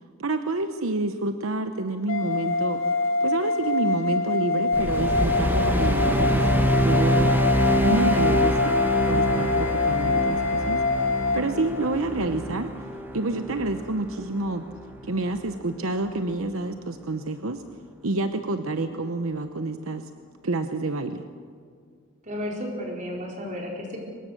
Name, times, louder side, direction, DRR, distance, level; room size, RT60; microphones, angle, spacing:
voice 1, 0.2-2.8 3.2-7.4 7.8-8.7 9.0-10.8 11.1-12.7 13.1-14.6 15.0-17.6 18.0-20.1 20.4-21.2, right 2 dB, 75° right, 8 dB, 0.9 m, -28 dB
sound 1, 2.1-11.4, left 4 dB, 70° left, 1.8 m, -25 dB
sound 2, 4.7-15.2, right 1 dB, 10° right, 1.2 m, -26 dB
voice 2, 22.2-24.0, left 1 dB, 35° right, -1 dB, 4.5 m, -33 dB
24.0 x 20.5 x 6.6 m, 2.1 s
head